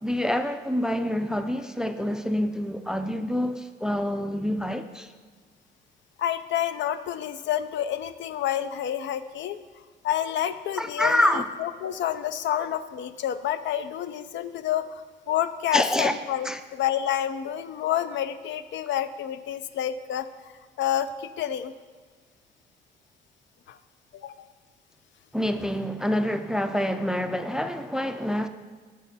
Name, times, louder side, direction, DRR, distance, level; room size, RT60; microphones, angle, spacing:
voice 1, 0.0-5.1 10.8-11.5 15.7-16.1 16.4-16.6 25.3-28.5, left 1 dB, 5° right, 0.3 m, -26 dB
voice 2, 6.2-9.6 10.0-20.3 20.8-21.7 23.7-23.8 24.1-24.5, left 10 dB, 65° left, 0.4 m, -29 dB
7.3 x 6.3 x 4.1 m
cardioid pair, 90°, 20 cm